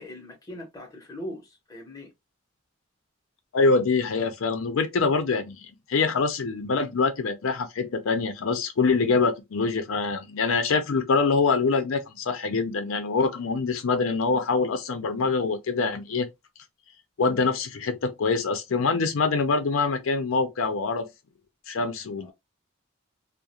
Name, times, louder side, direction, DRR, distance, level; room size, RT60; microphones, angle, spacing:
voice 1, 0.0-2.1 22.2-22.3, left 1 dB, 15° left, 0.7 m, -40 dB
voice 2, 3.5-16.3 17.2-21.1 21.7-22.3, left 4 dB, 75° left, 0.5 m, -25 dB
2.4 x 2.0 x 2.8 m
head